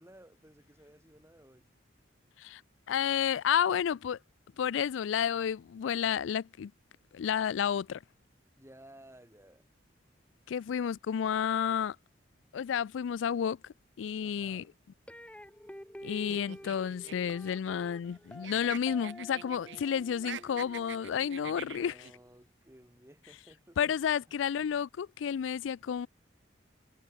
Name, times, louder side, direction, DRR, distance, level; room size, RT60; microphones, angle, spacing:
voice 1, 0.0-1.7 8.6-9.7 14.2-14.7 21.4-23.9 24.3-24.4, right 1 dB, 15° right, 4.9 m, -56 dB
voice 2, 2.9-4.2 4.6-6.7 7.1-8.0 10.5-12.0 12.5-14.7 16.0-21.9 23.8-26.1, left 8 dB, 85° left, 0.3 m, -31 dB
sound 1, 15.1-22.2, equal, 5° left, 1.8 m, -50 dB
sound 2, 16.3-18.2 18.4-19.8 20.1-22.1, right 8 dB, 75° right, 0.7 m, -45 dB
head